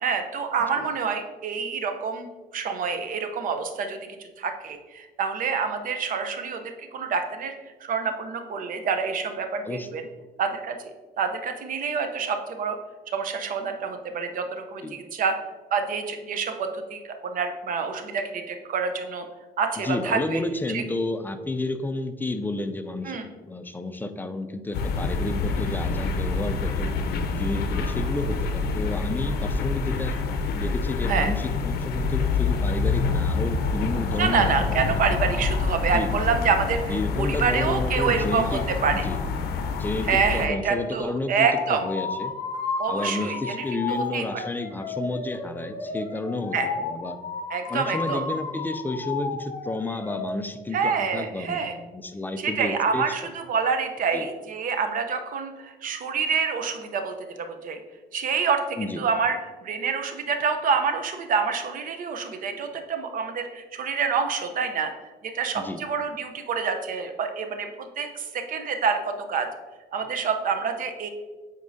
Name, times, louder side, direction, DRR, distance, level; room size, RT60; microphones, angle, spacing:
voice 1, 0.0-2.3 2.5-7.5 7.8-10.0 10.4-10.8 11.2-12.8 13.1-15.3 15.7-19.2 19.6-20.4 20.7-20.8 23.0-23.3 31.1-31.3 34.2-39.0 40.1-41.9 42.8-44.4 46.5-46.7 47.5-48.3 50.7-51.8 52.4-57.8 58.1-64.9 65.2-69.5 69.9-71.1, right 5 dB, 55° right, 6 dB, 0.7 m, -27 dB
voice 2, 19.8-26.9 27.3-30.2 30.5-35.0 35.9-36.1 36.9-38.6 38.9-39.2 39.8-42.3 42.9-47.2 47.7-53.0 54.1-54.3 58.8-59.0 65.6-65.8, left 2 dB, 10° left, 9 dB, 0.4 m, -31 dB
sound 1, 24.7-40.5, left 4 dB, 70° left, 0.6 m, -27 dB
sound 2, 41.4-50.3, left 4 dB, 50° left, 1.2 m, -33 dB
8.2 x 4.5 x 2.7 m, 1.3 s
cardioid pair, 110°, 17 cm